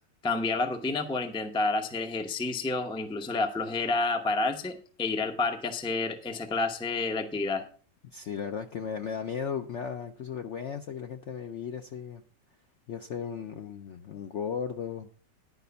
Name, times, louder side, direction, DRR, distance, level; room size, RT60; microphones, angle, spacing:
voice 1, 0.2-7.6, left 3 dB, 5° left, 6 dB, 0.4 m, -29 dB
voice 2, 8.0-12.2 12.9-15.1, left 7 dB, 65° left, 6 dB, 0.7 m, -36 dB
10.5 x 5.2 x 6.8 m, 0.43 s
omnidirectional pair, 1.9 m